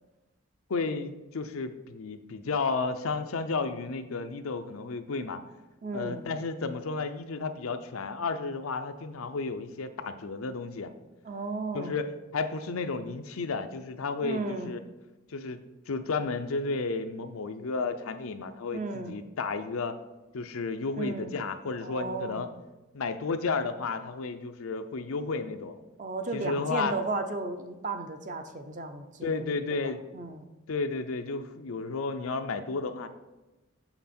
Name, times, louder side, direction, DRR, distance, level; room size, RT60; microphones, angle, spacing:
voice 1, 0.7-5.4 5.9-10.9 11.7-14.8 15.3-15.6 15.9-20.0 20.3-22.5 22.9-25.8 26.3-26.9 29.2-30.0 30.7-33.1, left 4 dB, 90° left, 8 dB, 0.6 m, -32 dB
voice 2, 5.8-6.2 11.2-12.0 14.2-14.7 18.7-19.1 21.0-21.3 21.8-22.5 26.0-29.4 29.8-30.5, right 3 dB, 35° right, 8 dB, 0.6 m, -34 dB
6.7 x 5.9 x 4.3 m, 1.1 s
head